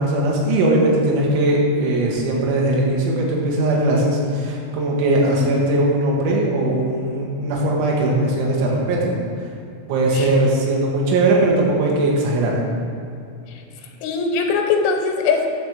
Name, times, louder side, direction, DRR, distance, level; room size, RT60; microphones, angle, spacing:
voice 1, 0.0-9.2 9.9-12.6, right 1 dB, 75° right, -3 dB, 3.7 m, -19 dB
voice 2, 5.1-5.4 10.2-10.3 14.0-15.5, left 5 dB, 90° left, 3 dB, 3.5 m, -21 dB
10.0 x 4.5 x 6.9 m, 2.6 s
omnidirectional pair, 5.8 m